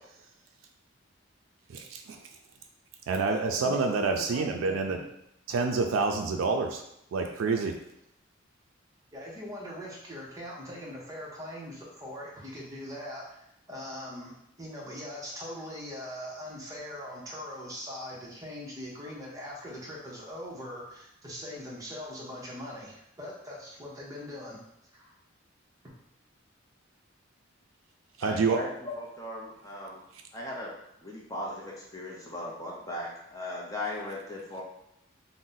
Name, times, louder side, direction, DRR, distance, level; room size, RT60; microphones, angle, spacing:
voice 1, 1.7-2.2 3.1-5.0 5.5-6.8 7.1-7.7 28.2-28.6, right 4 dB, 90° right, 3 dB, 0.3 m, -27 dB
voice 2, 3.3-5.0 9.1-24.6 24.9-25.1, equal, 15° right, -4 dB, 0.7 m, -41 dB
voice 3, 28.2-30.0 30.3-30.8 31.0-34.6, left 1 dB, 15° left, -3 dB, 0.5 m, -38 dB
2.6 x 2.0 x 3.8 m, 0.78 s
head